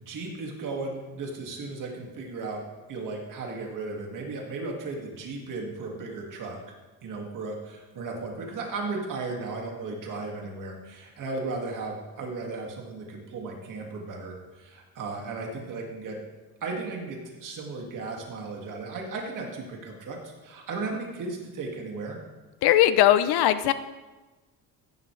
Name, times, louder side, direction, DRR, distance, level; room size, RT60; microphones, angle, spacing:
voice 1, 0.0-2.6 2.9-6.6 7.0-16.2 16.6-22.2, right 3 dB, 55° right, 0 dB, 2.3 m, -35 dB
voice 2, 22.6-23.7, left 12 dB, 75° left, 13 dB, 0.7 m, -19 dB
15.0 x 10.5 x 3.3 m, 1.2 s
cardioid pair, 140°, 39 cm